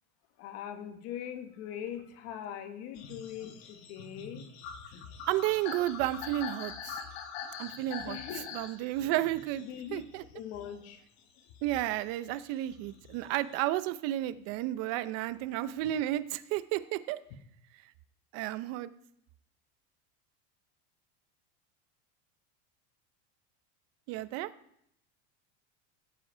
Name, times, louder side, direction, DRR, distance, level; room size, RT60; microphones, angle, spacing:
voice 1, 0.4-4.5 8.0-8.5 9.6-10.0 10.3-11.0, left 9 dB, 45° left, 1.7 m, -41 dB
sound 1, 3.0-10.9 11.4-13.6, left 7 dB, 65° left, 2.1 m, -44 dB
voice 2, 5.3-7.0 7.6-8.2 8.5-9.6 9.9-10.2 11.6-17.2 18.3-18.9 24.1-24.5, right 14 dB, 45° right, 0.8 m, -32 dB
16.5 x 8.4 x 5.0 m
supercardioid pair, 160°, 33 cm